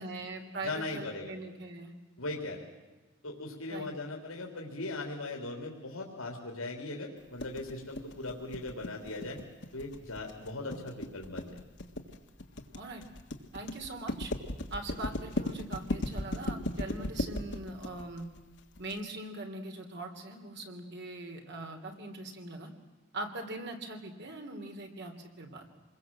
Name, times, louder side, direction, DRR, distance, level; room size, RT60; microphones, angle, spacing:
voice 1, 0.0-1.9 3.7-3.9 12.7-13.0 13.5-14.3 14.7-18.3 18.8-22.7 23.1-25.6, right 2 dB, 55° right, 4 dB, 3.3 m, -41 dB
voice 2, 0.6-1.3 2.2-2.6 3.2-9.4 9.7-11.6, left 2 dB, 80° left, 0 dB, 3.6 m, -39 dB
sound 1, 7.4-19.0, left 1 dB, 60° left, 1.8 m, -36 dB
27.0 x 21.5 x 7.7 m, 1.2 s
head